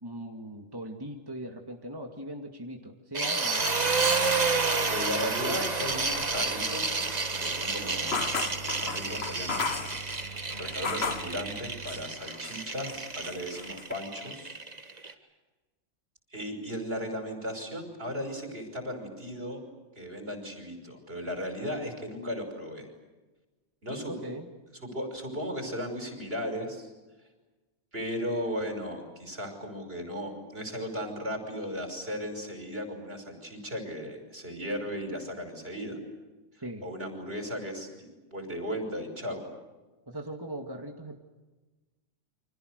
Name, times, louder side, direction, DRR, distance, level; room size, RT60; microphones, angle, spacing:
voice 1, 0.0-3.6 24.1-24.5 36.6-36.9 40.1-41.2, right 1 dB, 20° right, 2 dB, 2.2 m, -39 dB
sound 1, 3.1-15.1, right 3 dB, 35° right, 1.7 m, -30 dB
sound 2, 3.6-12.0, right 6 dB, 25° left, 1.9 m, -45 dB
voice 2, 4.8-7.1 7.4-8.2 8.7-10.2 10.6-14.6 15.0-15.2 16.3-19.6 20.0-22.9 23.8-24.2 24.8-26.9 27.9-36.0 36.8-39.5, equal, 55° right, 5 dB, 5.9 m, -36 dB
sound 3, 8.1-11.4 11.9-12.6 12.9-13.9, left 4 dB, 65° left, 1.7 m, -34 dB
30.0 x 25.5 x 6.6 m, 1.2 s
omnidirectional pair, 1.2 m